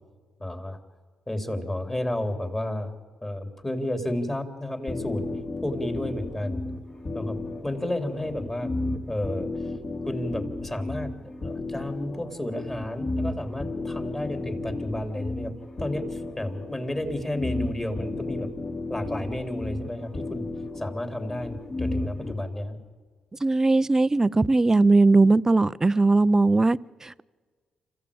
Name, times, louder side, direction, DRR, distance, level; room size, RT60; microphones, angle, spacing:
voice 1, 0.4-0.8 1.3-2.9 3.2-5.2 5.6-6.6 7.1-7.4 7.6-8.7 9.1-9.7 10.0-15.5 15.8-18.5 18.9-20.5 20.7-22.8, left 1 dB, 20° left, 6 dB, 3.5 m, -32 dB
sound 1, 4.9-22.3, left 2 dB, 45° left, 4.9 m, -33 dB
voice 2, 23.4-27.2, right 3 dB, 20° right, 18 dB, 0.6 m, -19 dB
26.5 x 15.0 x 8.7 m, 1.5 s
supercardioid pair, 60°, 2 cm